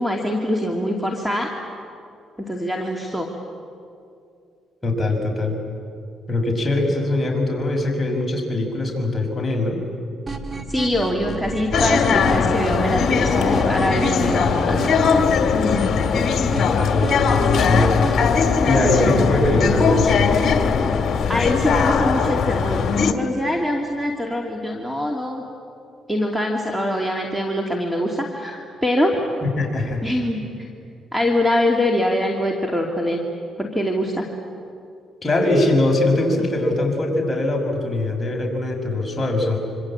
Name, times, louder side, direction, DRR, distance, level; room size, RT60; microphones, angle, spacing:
voice 1, 0.0-1.5 2.4-3.3 10.7-15.2 21.1-25.4 26.1-29.2 30.0-30.7 31.1-33.2 33.6-34.3, left 1 dB, 5° right, 1 dB, 2.5 m, -23 dB
voice 2, 4.8-5.5 6.3-9.8 16.5-18.0 18.6-20.3 29.4-30.0 35.2-39.6, left 2 dB, 20° left, 0 dB, 6.0 m, -22 dB
sound 1, 10.3-18.3, right 3 dB, 25° right, 2.0 m, -31 dB
sound 2, 11.7-23.1, left 6 dB, 55° left, 2.0 m, -19 dB
26.0 x 25.5 x 8.7 m, 2.4 s
cardioid pair, 90°, 0 cm